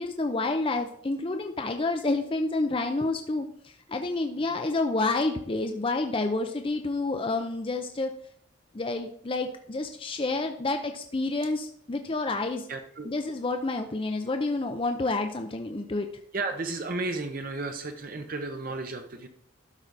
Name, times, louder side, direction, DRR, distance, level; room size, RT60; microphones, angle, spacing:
voice 1, 0.0-8.1 8.7-12.7 13.0-16.1, left 2 dB, 25° left, 5 dB, 0.5 m, -29 dB
voice 2, 12.7-13.1 16.3-19.3, right 3 dB, 45° right, 6 dB, 0.8 m, -33 dB
12.5 x 4.8 x 4.0 m, 0.62 s
head